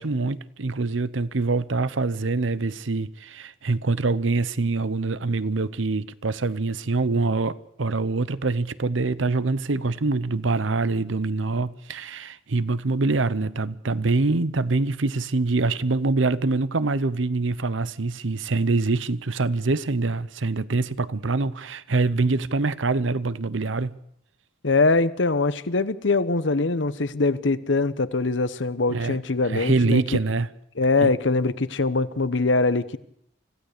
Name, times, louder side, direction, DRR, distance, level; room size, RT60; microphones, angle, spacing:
voice 1, 0.0-24.0 28.9-29.2 29.5-30.5 31.0-31.1, right 3 dB, 85° right, 0.9 m, -25 dB
voice 2, 24.6-30.2 30.8-33.0, left 3 dB, 75° left, 1.0 m, -23 dB
25.5 x 16.0 x 6.8 m
head